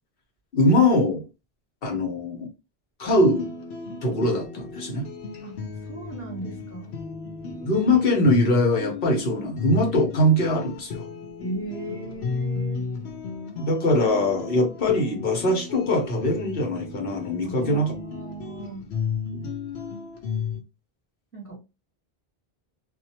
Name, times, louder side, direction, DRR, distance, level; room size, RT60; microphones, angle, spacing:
voice 1, 0.5-1.2 1.8-2.5 3.0-3.5 4.0-5.1 7.5-11.0 13.6-17.9 19.3-19.5, left 1 dB, 65° left, 1.1 m, -22 dB
sound 1, 3.1-20.6, left 5 dB, 85° left, 0.9 m, -34 dB
voice 2, 5.4-7.0 11.4-12.8 17.4-18.9 21.3-21.6, right 2 dB, 15° left, 1.3 m, -37 dB
2.7 x 2.0 x 2.8 m
omnidirectional pair, 1.0 m